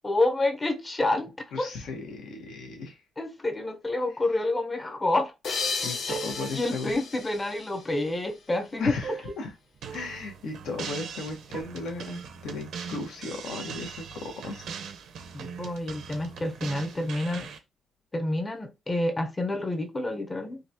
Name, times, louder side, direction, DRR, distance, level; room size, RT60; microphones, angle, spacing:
voice 1, 0.0-1.7 3.2-5.3 6.1-6.3 6.5-9.0 15.3-17.5 18.1-20.6, left 2 dB, 25° left, 0.7 m, -28 dB
voice 2, 1.5-3.0 5.8-6.9 8.8-9.5 9.9-14.0 14.4-14.6, left 3 dB, 75° left, 1.1 m, -35 dB
sound 1, 5.4-8.5, left 5 dB, 60° left, 0.7 m, -34 dB
sound 2, 5.6-6.6 9.0-9.4 9.8-10.3 11.5-11.6, right 7 dB, 55° right, 0.4 m, -39 dB
sound 3, 9.8-17.6, right 6 dB, 75° right, 0.8 m, -41 dB
3.8 x 2.4 x 2.8 m
cardioid pair, 90°, 0 cm